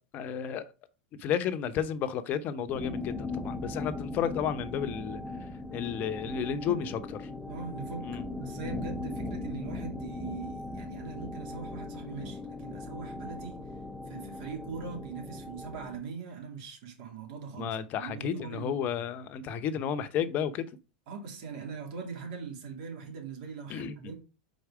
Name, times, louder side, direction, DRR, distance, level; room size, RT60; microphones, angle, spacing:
voice 1, 0.1-0.7 1.2-5.2 5.7-6.9 7.2-7.3 8.0-8.2 17.6-20.7 23.7-24.0, left 8 dB, 40° left, 0.7 m, -32 dB
sound 1, 2.7-16.0, left 2 dB, 5° left, 0.7 m, -39 dB
voice 2, 6.5-6.8 7.5-8.1 8.4-13.6 14.1-18.8 21.1-24.1, right 5 dB, 60° right, 2.5 m, -41 dB
4.7 x 4.1 x 4.8 m
hypercardioid pair, 100°, 4 cm